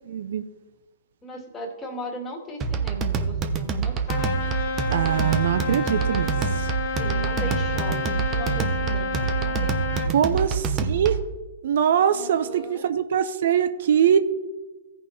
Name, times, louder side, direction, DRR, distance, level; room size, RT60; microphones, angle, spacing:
voice 1, 0.1-0.4 4.9-6.3 6.6-6.7 10.1-10.5 10.9-11.2 11.6-14.2, right 9 dB, 65° right, 11 dB, 0.5 m, -22 dB
voice 2, 1.2-4.2 6.5-6.6 7.0-10.4 12.1-12.9, equal, 15° left, 0 dB, 1.9 m, -37 dB
sound 1, 2.6-11.3, right 5 dB, 25° right, 0.8 m, -26 dB
Trumpet, 4.1-10.1, left 3 dB, 45° left, 2.1 m, -30 dB
15.5 x 5.4 x 3.3 m, 1.2 s
hypercardioid pair, 125°, 0 cm